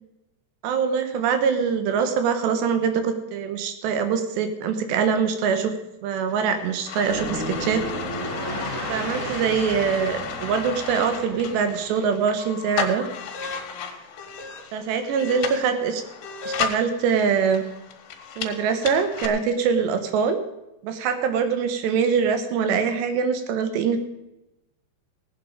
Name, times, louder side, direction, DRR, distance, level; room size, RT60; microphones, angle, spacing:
voice 1, 0.6-5.7 6.0-7.8 8.9-13.0 14.7-16.0 16.5-17.6 18.4-20.4 20.8-24.0, right 6 dB, 80° right, 8 dB, 3.2 m, -23 dB
sound 1, 6.3-19.3, left 6 dB, 75° left, 3.6 m, -34 dB
sound 2, 6.9-12.0, right 1 dB, 50° right, 0.9 m, -33 dB
17.5 x 9.1 x 5.1 m, 0.93 s
omnidirectional pair, 5.0 m